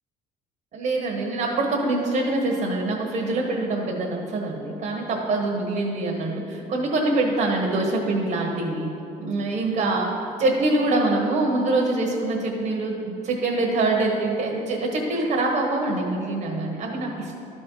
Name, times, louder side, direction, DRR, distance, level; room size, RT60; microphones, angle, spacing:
voice 1, 0.7-8.9 9.2-10.1 10.4-17.3, right 2 dB, 55° right, -1 dB, 1.3 m, -24 dB
12.0 x 4.3 x 5.5 m, 2.7 s
cardioid pair, 110°, 17 cm